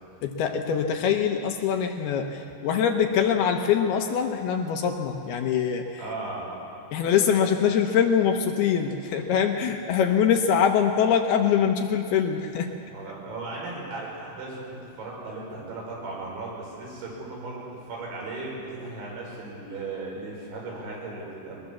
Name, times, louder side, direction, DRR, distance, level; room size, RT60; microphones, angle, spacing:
voice 1, 0.2-6.0 6.9-12.7, left 7 dB, 70° left, 4 dB, 2.7 m, -23 dB
voice 2, 6.0-6.5 12.9-14.7 15.0-17.6 17.9-21.6, right 3 dB, 85° right, -4 dB, 8.0 m, -36 dB
22.5 x 20.5 x 7.2 m, 2.6 s
omnidirectional pair, 5.2 m